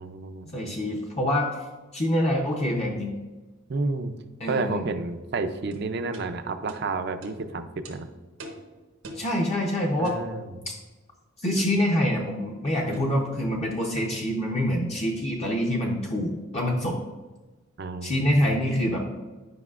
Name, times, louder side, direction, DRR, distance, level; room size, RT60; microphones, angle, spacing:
voice 1, 0.0-0.8 3.7-4.1 4.5-8.1 10.0-10.7 17.8-18.5, right 3 dB, 50° right, 9 dB, 0.4 m, -31 dB
voice 2, 0.5-1.6 1.9-3.1 4.4-4.8 9.2-10.2 10.7-10.8 11.4-17.0 18.0-19.0, left 1 dB, 30° left, -1 dB, 0.6 m, -26 dB
sound 1, 5.7-5.8 6.1-6.3 6.7-6.8 7.2-7.4 7.8-8.0 8.4-8.6 9.0-9.3 10.0-10.3 11.6-11.8 12.9-13.2 14.0-14.2, right 1 dB, 85° right, 1.1 m, -41 dB
9.5 x 5.4 x 2.4 m, 1.2 s
head